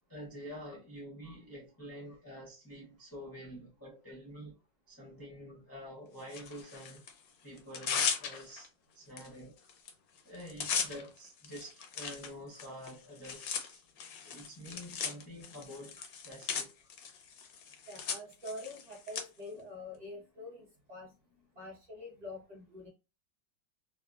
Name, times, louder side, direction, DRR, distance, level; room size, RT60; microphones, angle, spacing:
voice 1, 0.1-4.6 4.9-7.0 7.4-9.6 10.2-13.8 14.2-16.7, equal, 30° left, 0.4 m, -48 dB
Tearing, 6.3-7.1 7.6-8.7 9.2-9.3 9.6-9.9 10.2-19.2, left 6 dB, 70° left, 0.9 m, -38 dB
voice 2, 17.9-21.1 21.5-22.9, left 2 dB, 30° right, 0.8 m, -46 dB
3.5 x 2.2 x 2.4 m
omnidirectional pair, 2.0 m